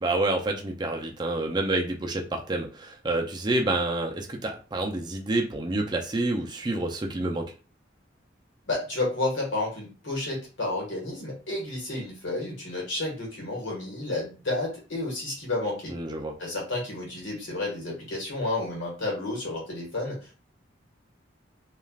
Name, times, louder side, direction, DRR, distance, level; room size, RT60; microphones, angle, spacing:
voice 1, 0.0-7.5 15.9-16.3, right 2 dB, 20° right, 2 dB, 0.4 m, -28 dB
voice 2, 8.7-15.9 16.4-20.4, left 2 dB, 80° left, -3 dB, 1.5 m, -31 dB
3.2 x 2.4 x 2.3 m, 0.34 s
head